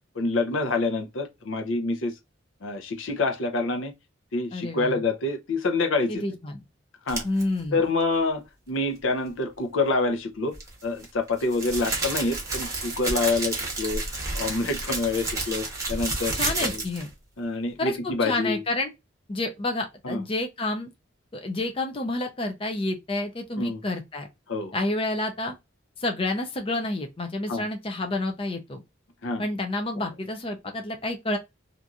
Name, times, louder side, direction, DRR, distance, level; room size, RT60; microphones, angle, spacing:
voice 1, 0.1-2.2 2.6-3.9 4.3-6.2 7.1-7.3 7.7-10.6 10.8-14.0 14.3-16.3 16.6-16.8 17.4-18.6 20.0-20.2 23.6-23.8 24.5-24.7 27.5-27.7 29.2-29.4 30.0-30.1, left 3 dB, 75° left, 0.6 m, -27 dB
voice 2, 4.5-5.0 6.1-6.6 7.2-7.8 16.3-17.1 17.8-18.9 19.3-20.9 21.3-24.3 24.7-25.5 26.0-28.8 29.4-31.4, left 2 dB, 30° left, 0.5 m, -29 dB
sound 1, 7.1-7.4 10.5-17.1, right 3 dB, 15° right, 0.9 m, -30 dB
2.9 x 2.6 x 2.3 m
head